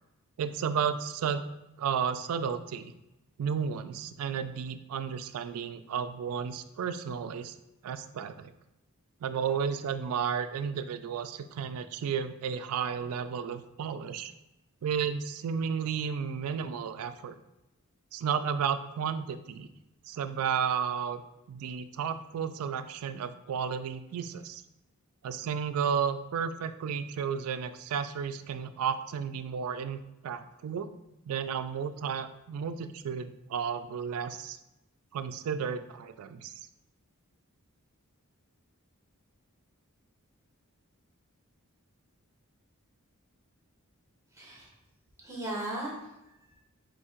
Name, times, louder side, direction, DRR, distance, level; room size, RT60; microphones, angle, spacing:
voice 1, 0.4-1.5 1.8-2.9 3.4-7.5 7.8-8.5 9.2-14.3 14.8-17.3 18.1-19.7 20.1-21.2 21.5-24.6 25.2-30.9 31.3-34.6 35.1-36.5, right 7 dB, 75° right, 10 dB, 0.3 m, -33 dB
voice 2, 44.3-44.7 45.2-46.6, right 1 dB, 15° right, -3 dB, 0.8 m, -38 dB
3.6 x 2.7 x 4.3 m, 0.93 s
head